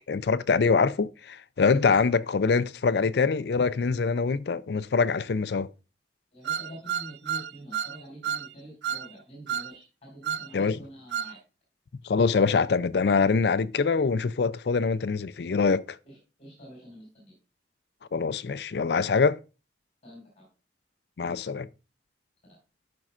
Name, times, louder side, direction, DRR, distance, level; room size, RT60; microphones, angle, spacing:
voice 1, 0.1-5.7 10.5-10.8 12.0-16.0 18.1-19.4 21.2-21.7, left 5 dB, 65° left, 0.4 m, -24 dB
voice 2, 6.3-11.4 16.0-17.3 20.0-20.5 22.4-22.6, equal, 40° left, 5.1 m, -46 dB
sound 1, 6.5-8.0 8.2-8.5 8.8-9.1 9.5-9.7 10.2-10.5 11.1-11.3, right 8 dB, 70° right, 0.4 m, -30 dB
13.0 x 6.0 x 2.5 m
head